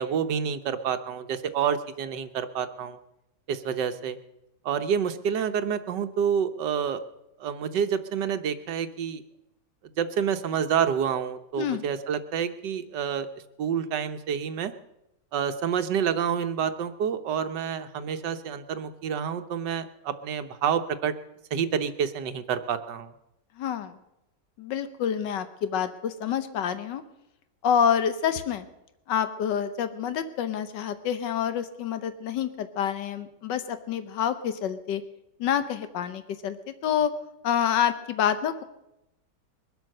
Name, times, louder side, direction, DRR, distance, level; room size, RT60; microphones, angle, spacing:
voice 1, 0.0-3.0 3.5-4.2 4.6-7.0 7.4-9.2 10.0-13.3 13.6-14.7 15.3-21.1 21.5-23.1, right 8 dB, 80° right, 10 dB, 1.6 m, -28 dB
voice 2, 23.6-23.9 24.6-27.0 27.6-28.7 29.1-35.0 35.4-36.6 36.8-37.1 37.4-38.6, left 8 dB, 90° left, 11 dB, 1.6 m, -27 dB
22.5 x 8.1 x 6.5 m, 0.86 s
omnidirectional pair, 1.8 m